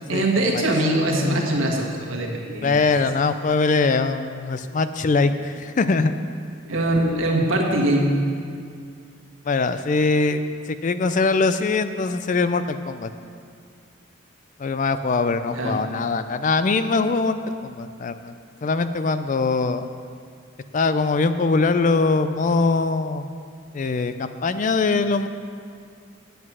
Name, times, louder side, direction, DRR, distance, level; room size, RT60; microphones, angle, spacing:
voice 1, 0.1-2.8 6.7-8.2 15.5-15.8, right 1 dB, 75° right, -1 dB, 1.6 m, -22 dB
voice 2, 1.1-1.6 2.6-6.1 9.5-13.1 14.6-17.4 17.6-18.3 18.6-19.9 20.7-23.3 23.7-25.3, left 3 dB, 40° left, 11 dB, 0.3 m, -22 dB
9.7 x 7.9 x 6.1 m, 2.2 s
head